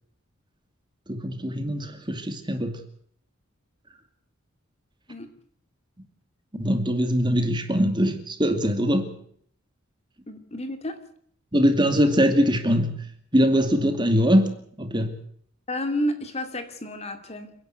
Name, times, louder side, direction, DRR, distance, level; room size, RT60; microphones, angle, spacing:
voice 1, 1.1-2.8 6.5-9.2 11.5-15.1, equal, 20° right, 2.4 m, -22 dB
voice 2, 10.3-11.0 15.7-17.5, equal, 30° left, 2.5 m, -30 dB
29.5 x 11.0 x 9.2 m
head